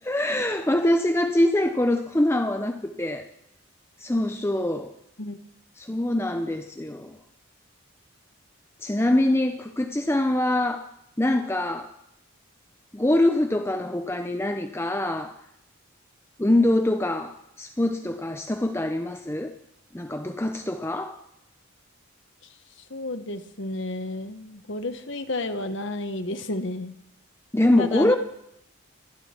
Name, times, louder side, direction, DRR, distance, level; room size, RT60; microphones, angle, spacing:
voice 1, 0.0-3.2 4.0-4.9 5.8-7.2 8.8-10.8 11.2-11.9 12.9-15.3 16.4-19.5 19.9-21.1 27.5-28.2, left 1 dB, 10° left, 6 dB, 0.5 m, -24 dB
voice 2, 22.9-26.9 27.8-28.1, left 2 dB, 60° left, 8 dB, 1.2 m, -31 dB
23.5 x 11.5 x 4.4 m, 0.81 s
head